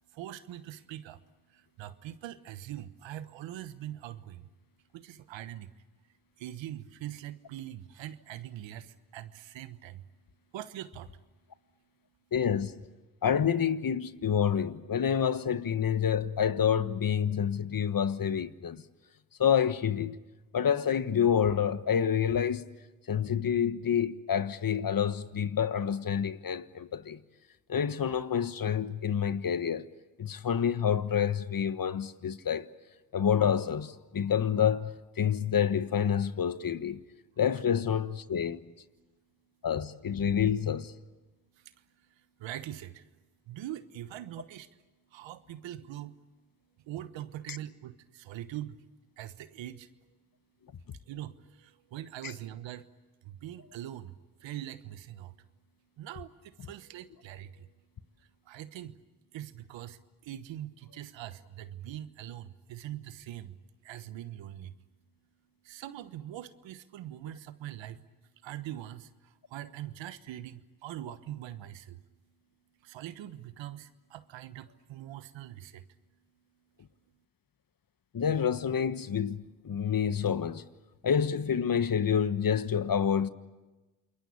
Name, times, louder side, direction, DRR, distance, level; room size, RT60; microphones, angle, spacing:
voice 1, 0.1-1.2 1.5-4.5 4.9-5.7 6.4-10.1 10.5-11.2 41.5-43.1 43.5-44.7 45.1-46.2 46.8-48.8 49.2-49.9 50.9-52.9 53.2-55.4 56.0-57.7 58.2-59.0 59.3-63.6 63.8-64.8 65.6-68.1 68.4-72.0 72.8-75.8, right 12 dB, 80° right, 1.2 m, -43 dB
voice 2, 12.3-12.9 13.2-18.8 19.4-20.2 20.5-22.7 23.1-27.2 27.7-29.9 30.2-32.7 33.1-37.0 37.4-38.6 39.6-40.9 47.5-47.6 78.1-80.6 81.0-83.3, left 8 dB, 50° left, 1.4 m, -28 dB
28.0 x 22.0 x 8.7 m
supercardioid pair, 45°, 44 cm